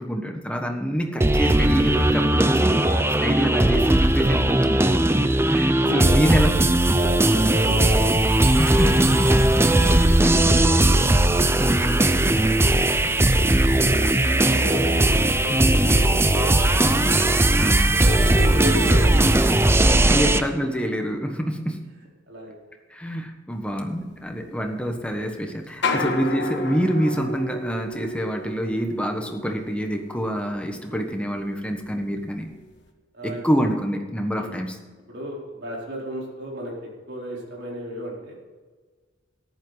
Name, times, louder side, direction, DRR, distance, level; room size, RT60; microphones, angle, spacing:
voice 1, 0.0-2.9 3.2-6.7 8.6-9.4 11.6-12.1 15.5-16.0 17.5-18.0 20.0-21.9 22.9-32.5 33.2-34.7, equal, 5° left, 3 dB, 1.4 m, -26 dB
sound 1, 1.2-20.4, right 1 dB, 10° right, 0.6 m, -18 dB
voice 2, 5.8-6.2 7.0-9.4 10.0-11.5 11.8-15.0 15.3-17.0 18.0-20.4 22.3-22.6 24.3-24.6 25.9-26.2 30.9-31.0 33.1-33.4 34.4-34.6 35.1-38.4, equal, 60° right, -2 dB, 4.0 m, -34 dB
sound 2, 24.2-25.2 25.7-31.0 31.3-31.9 32.5-32.7, left 2 dB, 60° left, 1.5 m, -32 dB
14.0 x 11.0 x 4.0 m, 1.4 s
head